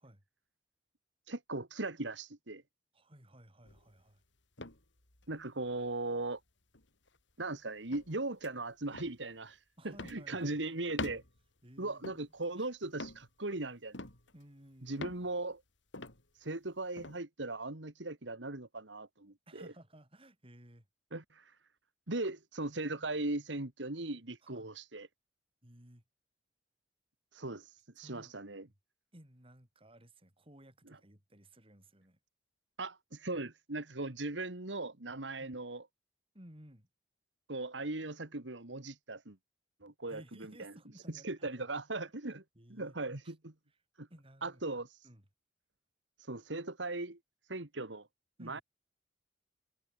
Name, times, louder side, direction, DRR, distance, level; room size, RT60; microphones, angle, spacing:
voice 1, 1.3-2.6 5.3-6.4 7.4-9.6 9.8-11.2 11.8-14.0 14.8-15.6 16.4-19.7 21.1-21.5 22.1-25.1 27.3-27.7 28.0-28.7 32.8-35.9 37.5-39.4 39.8-40.7 41.1-42.4 42.7-43.5 44.0-44.1 44.4-45.0 46.3-47.2 47.5-48.1 48.4-48.6, right 2 dB, 85° right, 2.3 m, -38 dB
voice 2, 2.9-4.2 9.8-10.8 11.6-12.0 12.6-12.7 14.3-15.3 19.5-20.9 24.4-24.7 25.6-26.0 28.0-28.6 29.1-32.2 35.4-35.6 36.3-36.9 40.1-41.7 42.5-43.0 43.2-43.3 43.7-43.8 44.1-44.6 45.0-45.2 48.4-48.6, right 1 dB, 30° right, 6.0 m, -57 dB
sound 1, 3.6-4.0 4.6-5.5 5.8-5.9 6.7-7.2 7.9-8.1 8.4-8.5 8.9-9.2 9.9-10.3 10.9-11.5 12.0-12.5 12.9-13.3 13.9-14.4 15.0-15.3 15.9-16.2 17.0-17.2, left 2 dB, 85° left, 4.9 m, -44 dB
head